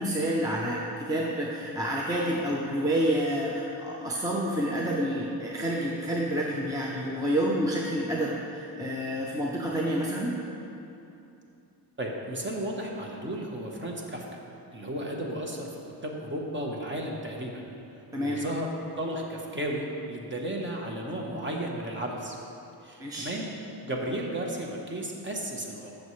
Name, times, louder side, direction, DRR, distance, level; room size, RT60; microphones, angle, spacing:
voice 1, 0.0-10.3 18.1-18.4 23.0-23.3, equal, 10° right, -3 dB, 0.6 m, -28 dB
voice 2, 12.0-14.2 14.7-17.6 17.9-18.7 19.0-22.4 22.8-23.5 23.8-25.9, right 1 dB, 30° right, 0 dB, 1.0 m, -34 dB
14.0 x 6.5 x 3.2 m, 2.8 s
wide cardioid pair, 160°, 40 cm